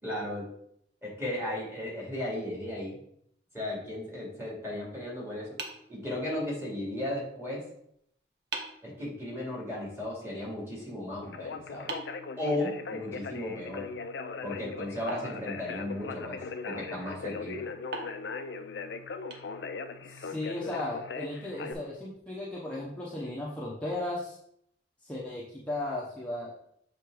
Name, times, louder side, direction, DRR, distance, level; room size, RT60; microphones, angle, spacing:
voice 1, 0.0-0.4 1.0-3.0 3.5-5.6 5.9-7.6 8.8-11.9 12.4-13.9 14.4-16.4 16.7-17.6, left 1 dB, 15° right, -4 dB, 2.4 m, -35 dB
sound 1, 5.6-6.7 7.9-8.0 8.5-8.9 11.9-13.1 15.1-16.2 17.9-20.0, right 3 dB, 65° right, 0.9 m, -42 dB
Conversation, 11.2-21.7, left 4 dB, 65° left, 0.5 m, -39 dB
voice 2, 20.1-24.4 25.0-26.6, left 1 dB, 5° left, -6 dB, 0.9 m, -36 dB
6.6 x 3.5 x 4.7 m, 0.71 s
head